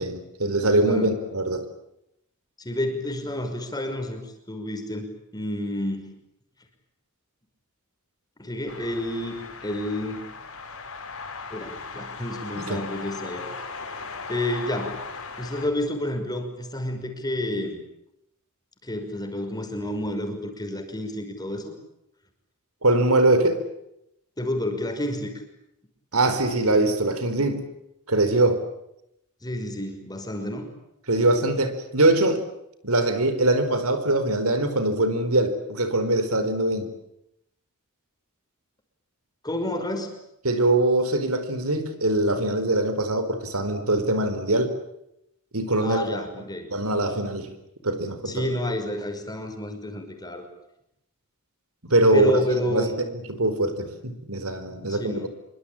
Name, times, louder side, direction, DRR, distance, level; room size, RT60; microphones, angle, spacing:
voice 1, 0.0-1.6 12.5-12.8 22.8-23.6 26.1-27.6 28.1-28.6 31.1-32.4 32.8-36.9 40.4-44.7 45.5-46.1 46.7-47.5 47.8-48.5 51.8-52.3 52.7-55.3, right 2 dB, 70° right, 10 dB, 4.5 m, -22 dB
voice 2, 2.6-4.2 4.5-6.2 8.4-9.4 9.6-10.2 11.5-13.4 14.3-15.1 15.4-17.8 18.8-21.7 24.4-25.3 26.7-26.8 29.4-30.7 39.4-40.2 45.8-46.7 48.3-50.5 52.1-53.0 54.9-55.3, left 1 dB, 20° left, 5 dB, 5.7 m, -29 dB
sound 1, 8.7-15.7, left 4 dB, 70° left, 6.7 m, -38 dB
27.0 x 24.5 x 8.9 m, 0.80 s
head